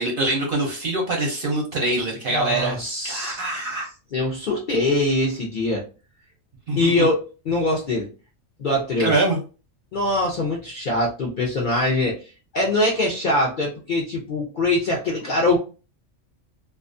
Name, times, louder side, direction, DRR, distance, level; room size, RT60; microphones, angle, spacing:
voice 1, 0.0-3.9 6.7-7.1 9.0-9.4, right 2 dB, 55° right, 0 dB, 0.6 m, -24 dB
voice 2, 2.3-3.7 4.1-5.8 6.8-7.1 7.5-8.1 8.6-9.2 9.9-12.2 12.5-15.6, left 2 dB, 60° left, -2 dB, 0.5 m, -23 dB
2.3 x 2.3 x 2.5 m, 0.34 s
omnidirectional pair, 1.4 m